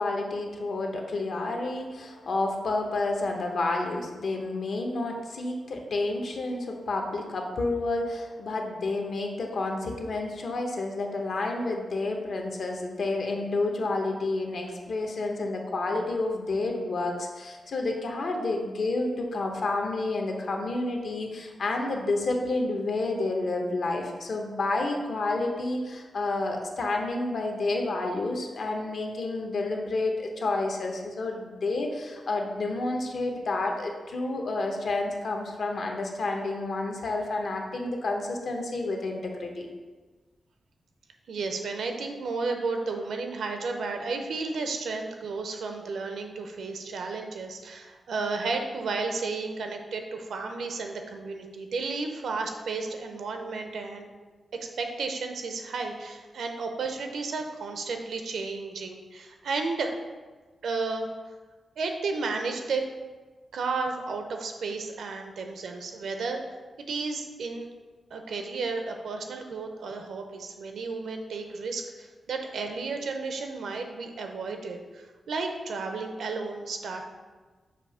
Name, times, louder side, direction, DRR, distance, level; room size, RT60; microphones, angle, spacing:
voice 1, 0.0-39.7, left 2 dB, 60° left, 2 dB, 0.9 m, -30 dB
voice 2, 41.3-54.0 54.8-59.9 60.6-61.1 61.8-62.8 63.5-66.4 66.9-67.7 68.1-77.0, right 4 dB, 85° right, 4 dB, 0.7 m, -33 dB
6.8 x 2.8 x 5.5 m, 1.3 s
wide cardioid pair, 140°, 0 cm